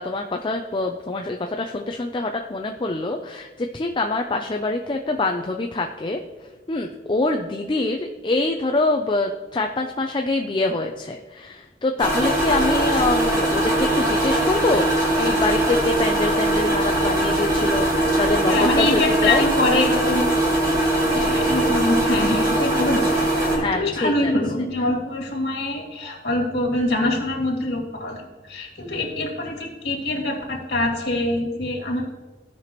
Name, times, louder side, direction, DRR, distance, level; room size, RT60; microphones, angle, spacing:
voice 1, 0.0-6.2 6.7-19.4 23.6-24.3, left 2 dB, 25° left, 4 dB, 0.4 m, -25 dB
sound 1, 12.0-23.6, right 1 dB, 25° right, 2.7 m, -21 dB
voice 2, 18.5-20.3 21.1-23.2 23.5-32.0, left 2 dB, 65° left, -1 dB, 2.5 m, -24 dB
16.5 x 5.9 x 3.0 m, 1.2 s
head